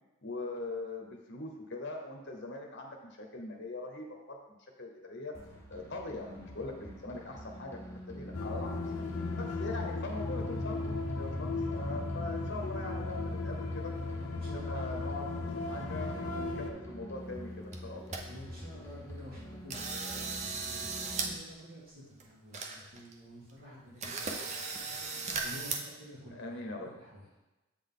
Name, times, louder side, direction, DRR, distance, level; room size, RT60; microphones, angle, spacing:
voice 1, 0.2-5.3 5.7-7.8 8.1-8.7 9.4-13.9 14.5-15.3 15.7-18.3 26.3-26.9, left 2 dB, 50° left, 1 dB, 0.9 m, -41 dB
sound 1, 5.3-21.3, equal, 10° left, 0.7 m, -46 dB
sound 2, 8.3-16.7, left 3 dB, 80° left, 0.7 m, -36 dB
voice 2, 14.3-14.9 18.2-27.3, equal, 65° right, -9 dB, 2.0 m, -51 dB
sound 3, 17.4-17.5 17.7-18.2 18.6-18.7 19.2-19.4 19.7-21.3 21.6-21.7 22.2-22.3 22.5-23.1 23.5-23.6 24.0-25.8, right 4 dB, 30° right, 0.5 m, -37 dB
7.8 x 3.9 x 3.7 m, 1.0 s
head